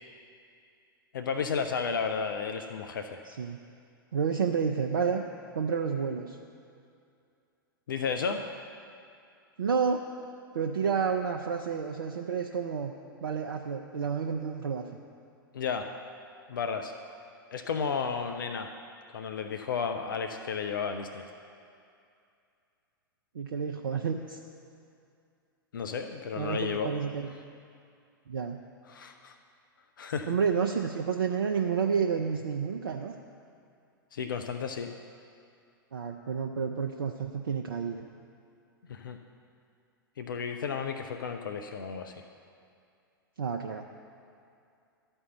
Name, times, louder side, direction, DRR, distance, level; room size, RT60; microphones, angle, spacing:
voice 1, 1.1-3.2 7.9-8.4 15.5-15.9 16.5-16.9 17.5-18.7 19.1-21.2 25.7-26.9 28.9-29.3 30.0-30.4 34.1-34.9 38.9-39.2 40.2-42.1, left 6 dB, 65° left, 6 dB, 0.6 m, -33 dB
voice 2, 3.2-3.6 4.1-5.2 5.5-6.4 9.6-10.0 10.5-12.9 13.2-14.9 23.3-24.4 26.4-27.3 28.3-28.6 30.3-33.1 35.9-38.1 43.4-43.8, right 6 dB, 65° right, 2 dB, 0.5 m, -30 dB
12.5 x 4.4 x 7.7 m, 2.5 s
figure-of-eight pair, 100°, 12 cm